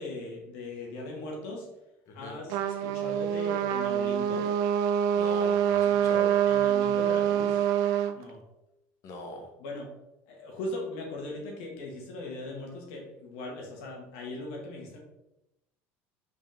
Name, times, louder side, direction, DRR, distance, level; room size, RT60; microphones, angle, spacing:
voice 1, 0.0-1.7 2.1-4.5 5.8-6.1 6.5-7.7 8.1-8.4 9.6-9.9 10.3-15.0, left 2 dB, 80° left, -1 dB, 2.0 m, -39 dB
voice 2, 2.1-2.4 5.1-6.4 9.0-9.5, left 2 dB, 55° left, 3 dB, 1.5 m, -41 dB
Trumpet, 2.5-8.1, right 9 dB, 70° right, 0.5 m, -25 dB
5.4 x 4.8 x 3.6 m, 0.89 s
supercardioid pair, 105°, 7 cm